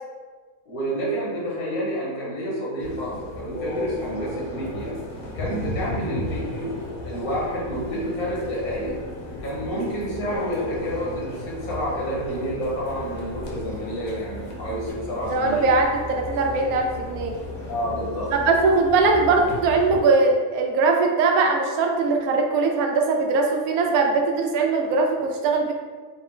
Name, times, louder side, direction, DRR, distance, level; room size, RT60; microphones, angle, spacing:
voice 1, 0.7-5.0 5.3-6.7 7.0-9.0 9.4-15.6 17.7-18.3, equal, 75° left, -5 dB, 1.5 m, -29 dB
sound 1, 2.8-20.0, left 2 dB, 55° left, 0.9 m, -35 dB
voice 2, 15.3-17.4 18.3-25.7, right 3 dB, 85° right, 2 dB, 1.0 m, -21 dB
4.0 x 2.1 x 3.7 m, 1.5 s
omnidirectional pair, 1.5 m